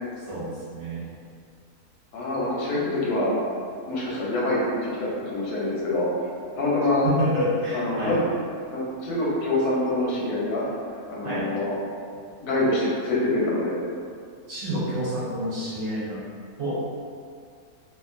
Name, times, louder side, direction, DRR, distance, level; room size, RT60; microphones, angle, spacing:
voice 1, 0.3-1.1 7.0-8.2 11.2-11.5 14.5-16.2 16.6-16.8, equal, 55° right, -9 dB, 0.9 m, -28 dB
voice 2, 2.1-3.4 3.9-6.1 6.6-7.1 7.7-8.2 8.7-10.6 11.1-11.7 12.4-13.8, left 2 dB, 90° left, -5 dB, 1.2 m, -25 dB
2.8 x 2.4 x 2.5 m, 2.2 s
omnidirectional pair, 1.6 m